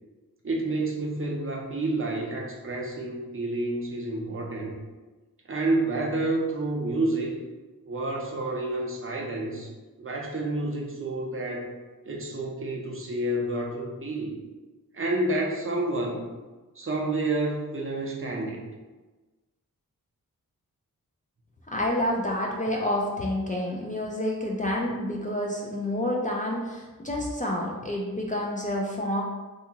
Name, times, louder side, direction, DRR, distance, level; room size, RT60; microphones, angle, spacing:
voice 1, 0.4-4.7 5.5-7.4 7.9-9.7 10.0-11.7 12.1-14.4 14.9-16.2 16.8-18.6, right 2 dB, 40° right, -1 dB, 0.5 m, -29 dB
voice 2, 21.7-29.2, left 1 dB, 25° left, -2 dB, 0.3 m, -28 dB
2.7 x 2.3 x 2.7 m, 1.2 s
wide cardioid pair, 95°, 35 cm